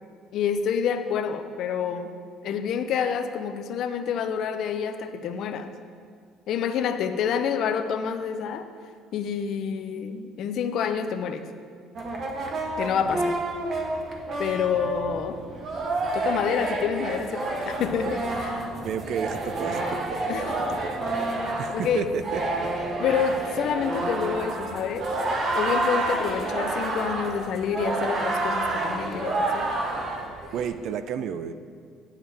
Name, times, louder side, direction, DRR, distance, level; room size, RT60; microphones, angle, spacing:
voice 1, 0.3-2.1 2.4-5.7 6.5-8.7 9.1-11.5 12.8-13.4 14.4-15.4 16.1-18.7 20.3-20.6 21.4-22.1 23.0-25.1 25.5-29.7, left 7 dB, 50° left, 8 dB, 0.4 m, -28 dB
sound 1, 12.0-30.7, right 2 dB, 35° right, 0.8 m, -29 dB
voice 2, 18.8-20.3 20.8-21.0 21.6-22.4 30.5-31.5, right 7 dB, 50° right, 12 dB, 0.3 m, -31 dB
8.8 x 7.2 x 3.3 m, 2.1 s
cardioid pair, 175°, 0 cm